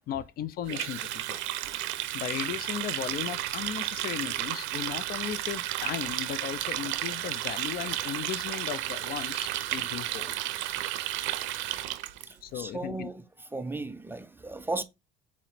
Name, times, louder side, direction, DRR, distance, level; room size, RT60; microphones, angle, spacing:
voice 1, 0.1-1.4 1.8-10.4 12.4-13.1, left 10 dB, 50° left, 0.4 m, -36 dB
Water tap faucet, 0.7-12.2, right 14 dB, 75° right, 0.5 m, -33 dB
voice 2, 12.1-14.8, right 2 dB, 10° right, 0.4 m, -38 dB
4.2 x 2.9 x 4.1 m
cardioid pair, 105°, 20 cm